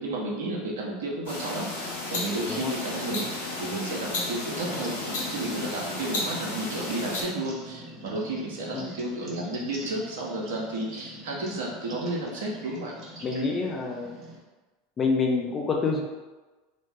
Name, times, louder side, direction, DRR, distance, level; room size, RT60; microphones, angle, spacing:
voice 1, 0.0-3.3 3.6-12.9, right 2 dB, 70° right, -3 dB, 0.6 m, -32 dB
sound 1, 1.3-7.2, left 2 dB, 75° left, 0.7 m, -33 dB
sound 2, 4.6-14.4, right 1 dB, 45° right, 0.9 m, -43 dB
voice 2, 13.2-14.2 15.0-16.0, left 4 dB, 30° left, 1 dB, 0.5 m, -27 dB
2.4 x 2.1 x 3.3 m, 1.2 s
hypercardioid pair, 85°, 0 cm